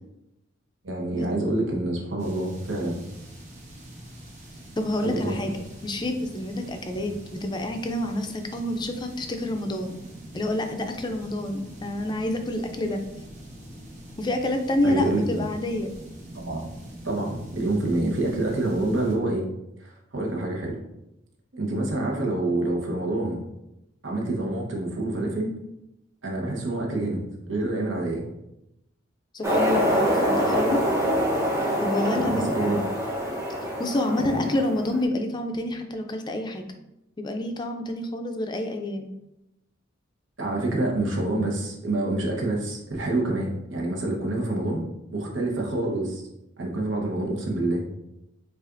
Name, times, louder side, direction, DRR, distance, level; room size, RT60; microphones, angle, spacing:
voice 1, 0.8-3.0 5.0-5.3 14.8-15.5 16.3-16.7 17.0-19.5 19.8-20.8 21.5-23.4 24.0-25.5 26.2-27.2 27.5-28.2 32.1-32.8 34.2-34.5 40.4-44.9 45.1-46.2 46.6-47.8, right 2 dB, 80° right, -1 dB, 1.0 m, -27 dB
sound 1, 2.2-19.1, right 1 dB, 40° right, 1.2 m, -44 dB
voice 2, 4.8-7.1 7.4-10.0 10.3-13.0 14.2-15.9 29.3-30.8 31.8-32.8 33.8-36.6 37.2-39.1, left 1 dB, 25° left, 5 dB, 0.4 m, -28 dB
sound 2, 29.4-35.0, equal, 15° right, 0.8 m, -25 dB
7.3 x 2.5 x 2.5 m, 0.87 s
head